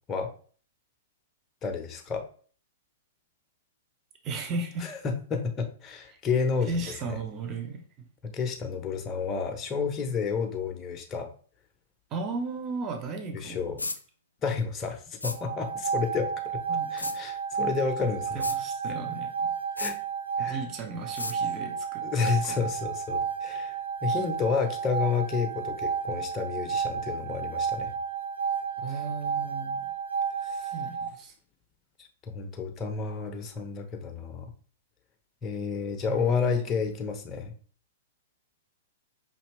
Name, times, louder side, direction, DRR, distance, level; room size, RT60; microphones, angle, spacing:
voice 1, 1.6-2.2 4.8-7.2 8.2-11.3 13.3-13.8 14.4-16.6 16.9-18.5 19.8-20.0 20.4-20.6 22.0-23.8 24.0-27.9 30.4-30.7 32.2-34.5 35.4-37.5, left 5 dB, 25° left, 4 dB, 0.8 m, -30 dB
voice 2, 4.2-4.9 6.7-8.1 12.1-13.8 16.7-17.2 18.0-19.6 20.4-22.0 22.3-22.6 28.8-29.9 30.7-31.3 36.0-36.7, right 4 dB, 30° right, 5 dB, 0.8 m, -36 dB
sound 1, 13.8-14.0 15.2-15.4 17.0-17.2 18.4-18.6 19.8-20.0 21.2-21.4, left 2 dB, 85° left, 0.4 m, -33 dB
sound 2, 15.3-31.1, right 6 dB, 75° right, 0.5 m, -32 dB
5.4 x 2.8 x 3.1 m, 0.43 s
figure-of-eight pair, 105°, 0 cm